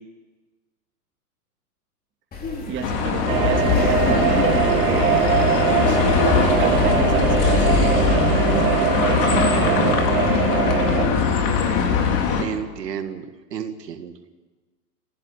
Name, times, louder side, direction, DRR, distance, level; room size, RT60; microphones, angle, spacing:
Laughter, 2.3-8.1, left 3 dB, 20° left, 3.7 m, -31 dB
voice 1, 2.7-5.3 5.8-6.0 6.3-10.1, right 7 dB, 25° right, 3 dB, 2.7 m, -32 dB
sound 1, 2.8-12.4, left 6 dB, 45° left, 3.8 m, -21 dB
sound 2, 3.3-11.1, right 7 dB, 60° right, 3.9 m, -21 dB
voice 2, 12.4-14.1, right 8 dB, 85° right, 7 dB, 2.0 m, -32 dB
18.5 x 16.0 x 10.0 m, 1.3 s
hypercardioid pair, 125°, 47 cm